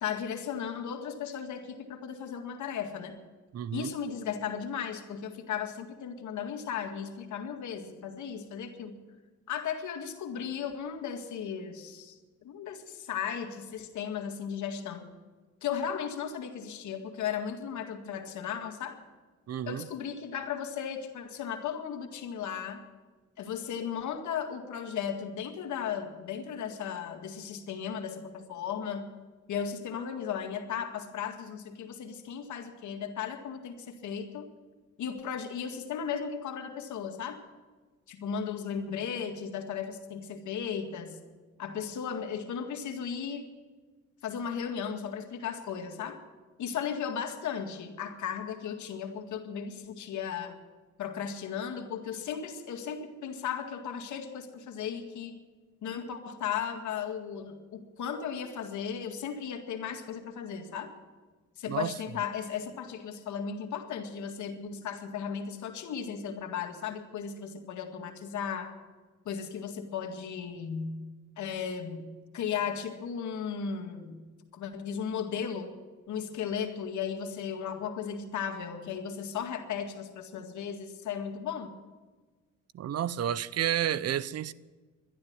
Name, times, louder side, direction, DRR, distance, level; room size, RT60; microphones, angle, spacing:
voice 1, 0.0-3.2 3.7-9.0 9.5-15.1 15.6-19.0 19.6-22.8 23.4-29.1 29.5-34.5 35.0-37.4 38.1-41.2 41.6-43.4 44.2-46.2 46.6-50.6 51.0-55.3 55.8-60.9 61.6-68.7 69.3-71.0 71.4-74.2 74.5-75.7 76.1-81.7, left 7 dB, 70° left, 2.0 m, -36 dB
voice 2, 3.5-3.9 19.5-19.9 61.7-61.9 82.7-84.5, right 10 dB, 55° right, 0.7 m, -31 dB
12.0 x 11.0 x 9.4 m
cardioid pair, 90°, 30 cm